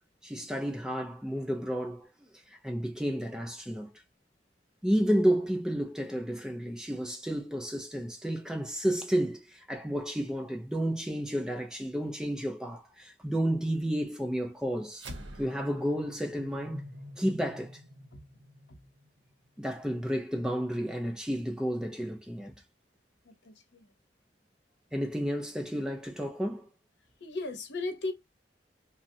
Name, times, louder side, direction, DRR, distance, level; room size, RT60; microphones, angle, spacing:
voice 1, 0.2-2.1 2.6-3.9 4.8-15.1 15.4-16.8 17.2-17.8 19.6-22.5 24.9-26.7, equal, 5° right, 0.4 m, -31 dB
sound 1, 14.9-19.6, equal, 80° right, 0.7 m, -46 dB
voice 2, 23.2-23.9 27.2-28.1, left 2 dB, 70° left, 0.8 m, -36 dB
3.6 x 2.0 x 2.6 m
head